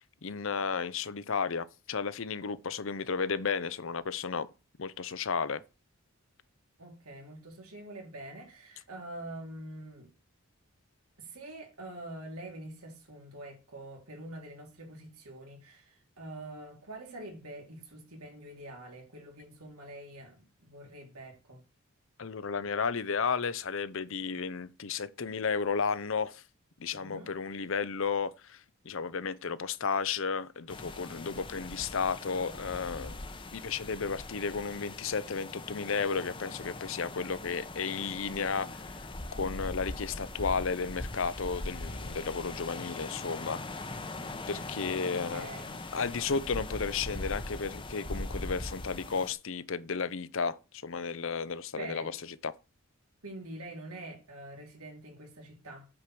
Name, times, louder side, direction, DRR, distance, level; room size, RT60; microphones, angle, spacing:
voice 1, 0.0-4.5 4.8-5.6 22.2-26.4 26.8-33.2 33.5-38.8 39.3-43.6 44.5-45.5 45.9-50.6 50.8-52.2 52.4-52.5, left 5 dB, 60° left, 0.6 m, -33 dB
voice 2, 6.8-10.1 11.2-21.6 26.9-27.3 45.0-45.7 51.8-52.1 53.2-55.9, right 1 dB, 85° right, 3.3 m, -45 dB
sound 1, 30.7-49.3, left 2 dB, 25° left, 0.8 m, -41 dB
8.6 x 4.9 x 6.2 m
head